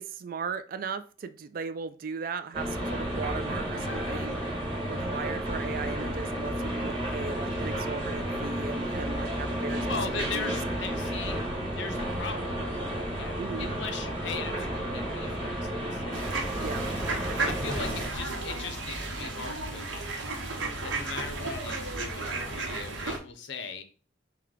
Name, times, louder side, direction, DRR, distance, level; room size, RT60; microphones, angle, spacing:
voice 1, 0.0-9.9 10.3-10.6 13.4-13.7 16.6-16.9, right 5 dB, 45° right, 12 dB, 0.3 m, -37 dB
sound 1, 2.5-18.1, equal, 25° right, 1.2 m, -32 dB
voice 2, 9.9-11.4 11.7-12.6 13.2-16.0 17.4-20.1 20.8-23.8, left 5 dB, 65° left, 8 dB, 0.6 m, -39 dB
sound 2, 16.1-23.2, right 2 dB, 85° right, 1.0 m, -33 dB
4.7 x 2.2 x 3.6 m, 0.39 s
head